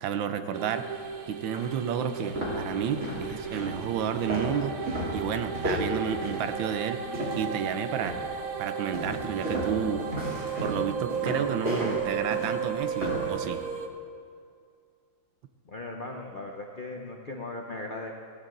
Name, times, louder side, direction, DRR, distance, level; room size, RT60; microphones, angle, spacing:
voice 1, 0.0-7.0 7.4-8.2 8.6-10.1 10.6-13.6, right 8 dB, 75° right, 9 dB, 1.4 m, -31 dB
sound 1, 0.5-13.9, right 7 dB, 55° right, 1.1 m, -35 dB
sound 2, 0.9-1.0 1.5-1.7 2.1-7.6 8.0-8.4 8.9-13.3, equal, 35° right, 3.8 m, -33 dB
voice 2, 15.7-18.2, left 2 dB, 55° left, 1 dB, 0.5 m, -38 dB
16.0 x 15.5 x 3.9 m, 2.3 s
omnidirectional pair, 2.2 m